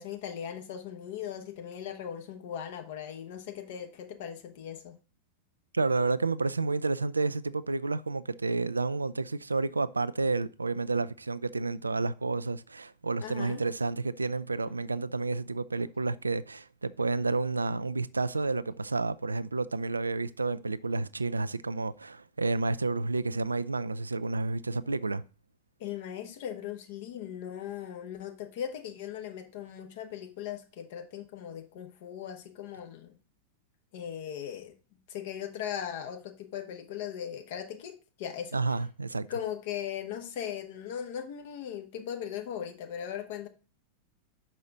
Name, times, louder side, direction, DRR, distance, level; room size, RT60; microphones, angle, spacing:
voice 1, 0.0-5.0 13.2-13.6 25.8-33.1 33.9-34.7 35.1-38.6 39.3-43.5, left 9 dB, 50° left, 1.1 m, -38 dB
voice 2, 5.7-25.2 38.5-39.3, right 3 dB, 80° right, 0.3 m, -30 dB
sound 1, 14.6-16.6 16.9-17.7 18.3-18.9 19.2-19.3 19.6-20.3, left 1 dB, 80° left, 2.1 m, -60 dB
5.8 x 5.5 x 3.9 m
figure-of-eight pair, 90°, 0 cm